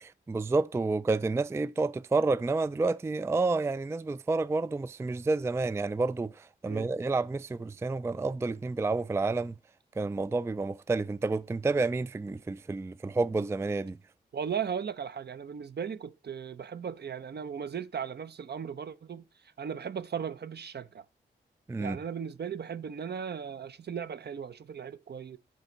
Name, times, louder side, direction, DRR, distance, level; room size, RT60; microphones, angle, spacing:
voice 1, 0.0-9.5 10.0-14.0 21.7-22.0, right 3 dB, 15° right, 0.3 m, -29 dB
voice 2, 14.3-19.3 19.6-21.0 21.8-25.4, right 7 dB, 55° right, 0.7 m, -37 dB
7.6 x 5.9 x 3.9 m
supercardioid pair, 40°, 20 cm